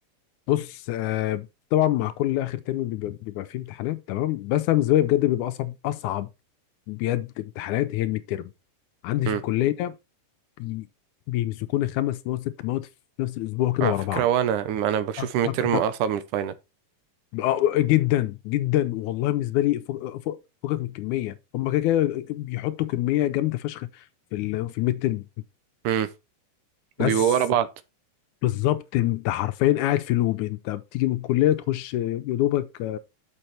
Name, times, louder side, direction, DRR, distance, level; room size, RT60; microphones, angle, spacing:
voice 1, 0.5-6.3 6.9-8.5 9.0-9.9 10.6-10.9 11.3-12.9 13.2-14.3 15.2-15.8 17.3-24.1 24.3-25.2 27.0-27.3 28.4-33.0, left 14 dB, 80° left, 1.9 m, -25 dB
voice 2, 13.8-16.5 25.8-26.1 27.0-27.7, right 9 dB, 75° right, 2.1 m, -24 dB
6.7 x 6.5 x 4.3 m
omnidirectional pair, 3.9 m